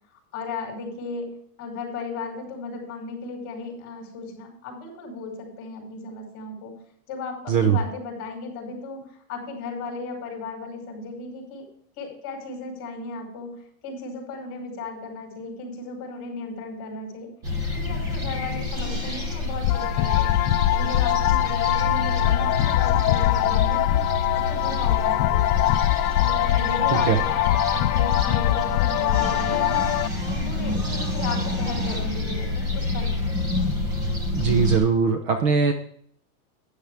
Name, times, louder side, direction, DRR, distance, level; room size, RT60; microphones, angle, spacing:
voice 1, 0.1-1.3 1.6-6.8 7.1-9.0 9.3-11.7 12.0-17.3 17.7-20.4 20.7-25.8 26.2-33.5, left 3 dB, 30° left, 1 dB, 5.3 m, -36 dB
sound 1, 17.4-34.8, left 2 dB, 10° right, 0.4 m, -28 dB
sound 2, 19.6-30.1, left 17 dB, 70° left, 0.6 m, -22 dB
voice 2, 34.4-35.7, right 6 dB, 30° right, 8 dB, 0.8 m, -20 dB
12.5 x 9.7 x 3.5 m, 0.63 s
supercardioid pair, 165°, 48 cm